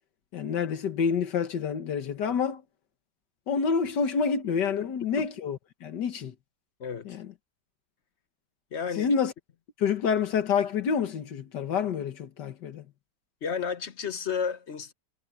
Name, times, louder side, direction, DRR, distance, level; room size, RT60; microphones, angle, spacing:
voice 1, 0.3-2.6 3.5-6.3 7.1-7.3 9.0-9.3 9.8-12.8, left 6 dB, 85° left, 1.9 m, -28 dB
voice 2, 6.8-7.2 8.7-9.1 13.4-14.9, left 6 dB, 50° left, 1.1 m, -32 dB
omnidirectional pair, 1.8 m